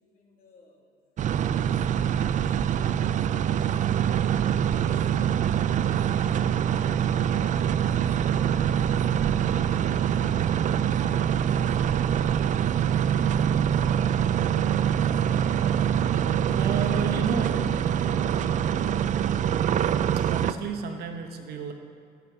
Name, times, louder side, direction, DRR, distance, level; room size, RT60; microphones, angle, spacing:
voice 1, 0.2-0.7 1.8-2.3 2.6-3.7 4.6-4.7 5.2-5.4 6.3-6.5 7.2-8.7 9.6-9.7 10.1-10.5 11.2-11.3 11.6-11.9, left 3 dB, 60° left, -2 dB, 2.9 m, -57 dB
sound 1, 1.2-20.5, right 9 dB, 45° right, 0.5 m, -24 dB
voice 2, 16.5-18.6 20.2-21.7, right 5 dB, 70° right, 5 dB, 1.2 m, -33 dB
15.0 x 8.3 x 6.0 m, 2.3 s
cardioid pair, 110°, 17 cm